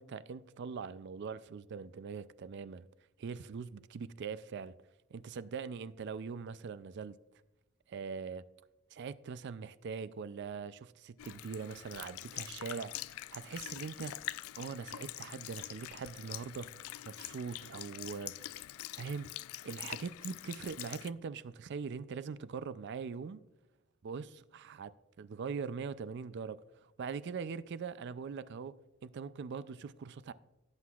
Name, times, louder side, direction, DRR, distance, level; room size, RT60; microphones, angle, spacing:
voice 1, 0.0-2.9 3.2-4.7 5.1-7.2 7.9-8.4 8.9-13.0 13.3-14.1 14.5-18.3 18.9-19.3 19.6-23.4 24.0-24.9 25.2-28.8 29.0-30.3, right 5 dB, 55° right, 0.4 m, -42 dB
Sink (filling or washing) / Liquid, 11.2-21.1, left 15 dB, 75° left, 0.3 m, -45 dB
17.0 x 7.8 x 2.4 m
head